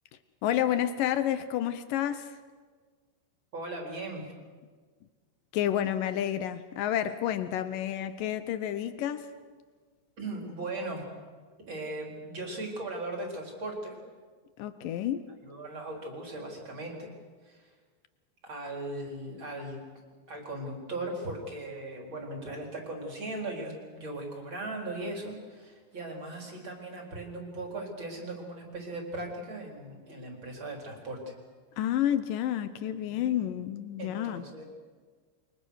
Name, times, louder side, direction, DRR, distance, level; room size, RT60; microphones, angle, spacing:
voice 1, 0.4-2.3 5.5-9.3 14.6-15.3 31.8-34.4, left 11 dB, 85° left, 12 dB, 1.9 m, -30 dB
voice 2, 3.5-4.2 10.2-11.1 11.7-14.0 15.4-17.1 17.4-17.7 18.4-19.8 20.3-31.3 33.1-33.2 34.0-34.6, right 2 dB, 30° right, 1 dB, 4.4 m, -38 dB
29.0 x 24.5 x 6.5 m, 1.5 s
omnidirectional pair, 5.1 m